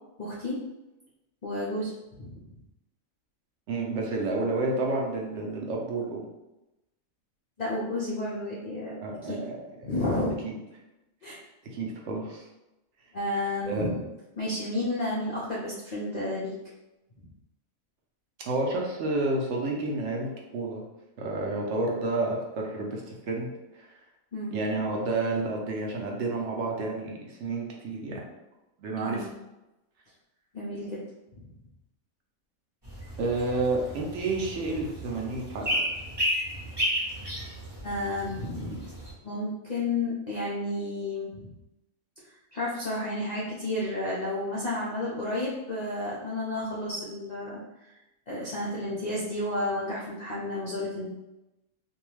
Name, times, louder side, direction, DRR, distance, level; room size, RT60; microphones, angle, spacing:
voice 1, 0.2-0.6 1.4-1.9 2.2-2.3 7.6-9.4 9.8-10.4 11.2-11.4 13.1-14.0 14.4-16.5 24.3-24.5 29.0-29.3 30.5-31.0 37.8-38.8 39.2-41.5 42.3-47.9 48.3-51.1, left 1 dB, 65° left, -7 dB, 0.4 m, -31 dB
voice 2, 3.7-6.3 9.0-9.9 10.4-10.6 11.7-12.5 13.7-13.9 18.4-20.8 21.2-23.5 23.8-23.9 24.5-28.2 28.8-29.3 33.2-35.8, right 2 dB, 65° right, -1 dB, 0.8 m, -30 dB
sound 1, 32.8-39.1, equal, 20° right, 0.8 m, -33 dB
2.6 x 2.3 x 3.1 m, 0.97 s
omnidirectional pair, 1.4 m